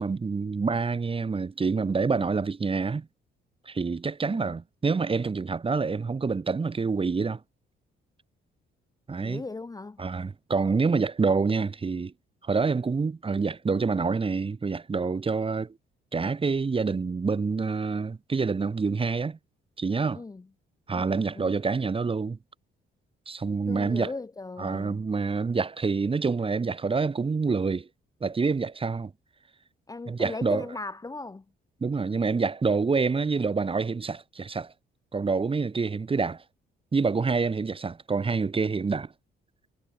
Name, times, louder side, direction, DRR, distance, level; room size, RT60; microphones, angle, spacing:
voice 1, 0.0-3.1 3.7-7.4 9.1-9.4 10.0-12.1 12.4-15.7 16.1-19.4 19.8-20.2 20.9-22.4 23.3-24.1 24.6-27.9 28.2-29.1 30.1-30.6 31.8-34.7 35.1-36.4 36.9-39.1, right 4 dB, 25° right, 1.3 m, -27 dB
voice 2, 4.2-4.6 9.2-10.0 20.1-20.5 20.9-21.6 23.7-25.0 29.9-31.4, left 3 dB, 20° left, 0.8 m, -38 dB
cardioid pair, 90°, 20 cm